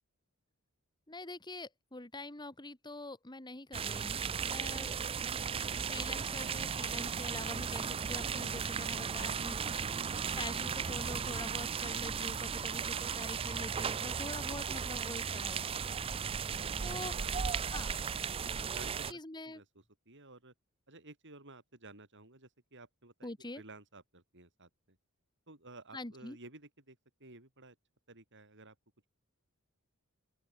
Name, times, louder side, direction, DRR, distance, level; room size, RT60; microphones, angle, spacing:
voice 1, 1.1-4.9 5.9-9.9 10.4-15.6 16.8-17.1 17.7-18.0 18.8-19.6 23.2-23.6 25.9-26.4, left 2 dB, 20° left, 2.0 m, -45 dB
sound 1, 3.7-19.1, right 6 dB, 25° right, 0.4 m, -36 dB
voice 2, 16.6-17.3 18.3-19.2 19.5-20.5 20.9-25.0 25.5-27.8 28.1-28.8, right 2 dB, 55° right, 7.3 m, -54 dB
open air
head